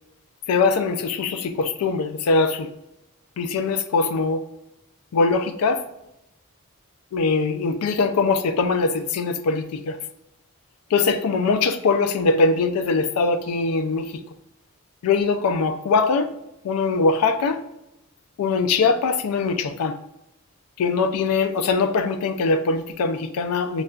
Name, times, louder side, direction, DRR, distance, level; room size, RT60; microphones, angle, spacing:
voice 1, 0.5-2.7 3.4-4.4 5.1-5.8 7.1-10.0 10.9-14.1 15.0-16.3 16.6-17.6 18.4-20.0 20.8-23.8, left 4 dB, 90° left, 8 dB, 0.4 m, -22 dB
6.3 x 2.3 x 2.3 m, 0.86 s
head